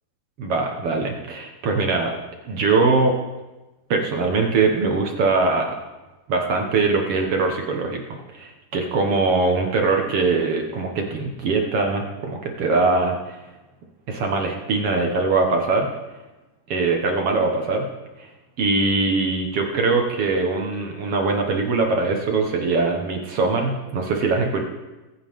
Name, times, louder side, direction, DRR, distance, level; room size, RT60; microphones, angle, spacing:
voice 1, 0.4-2.1 2.5-3.2 3.9-5.8 6.3-8.0 8.3-13.4 14.1-15.9 16.7-17.9 18.2-18.3 18.6-24.6, right 3 dB, 55° right, 2 dB, 2.0 m, -22 dB
23.5 x 9.0 x 3.7 m, 1.1 s
omnidirectional pair, 3.7 m